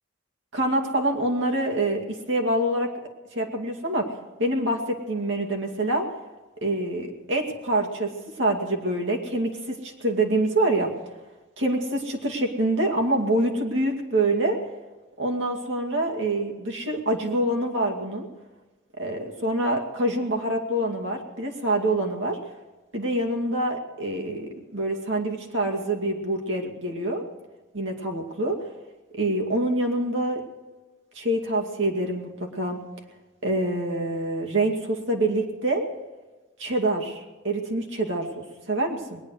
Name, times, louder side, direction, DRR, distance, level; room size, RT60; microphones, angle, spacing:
voice 1, 0.5-2.9 3.3-4.1 4.4-6.1 6.6-10.9 11.6-14.6 15.2-18.3 19.0-22.4 22.9-27.2 27.7-28.6 29.1-30.4 31.1-32.8 33.4-35.9 36.6-37.2 37.4-39.2, right 1 dB, 75° right, 1 dB, 2.3 m, -26 dB
21.0 x 9.7 x 6.5 m, 1.2 s
head